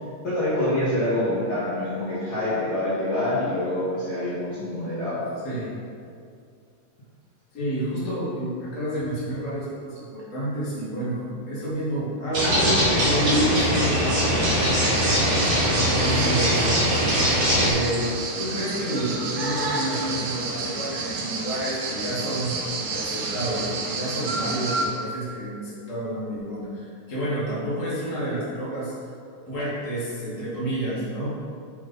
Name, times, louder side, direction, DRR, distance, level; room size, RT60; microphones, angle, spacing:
voice 1, 0.2-5.2 15.9-16.3, left 1 dB, 70° left, -13 dB, 0.9 m, -26 dB
voice 2, 5.4-5.7 7.5-15.2 15.8-16.7 17.5-28.9 29.5-31.3, right 1 dB, 45° left, -9 dB, 0.9 m, -29 dB
sound 1, 12.3-17.7, equal, 45° right, 1.5 m, -21 dB
sound 2, 14.8-24.8, right 3 dB, 80° right, 1.8 m, -30 dB
10.0 x 3.9 x 4.1 m, 2.3 s
omnidirectional pair, 4.8 m